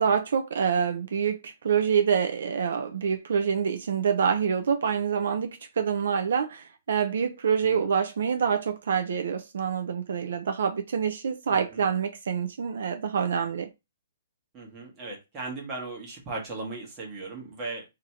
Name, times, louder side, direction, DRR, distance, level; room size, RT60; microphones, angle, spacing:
voice 1, 0.0-13.7, right 7 dB, 60° right, 0.3 m, -26 dB
voice 2, 11.5-11.8 14.5-17.8, right 3 dB, 15° right, 1.0 m, -37 dB
2.7 x 2.5 x 4.2 m
hypercardioid pair, 175°, 0 cm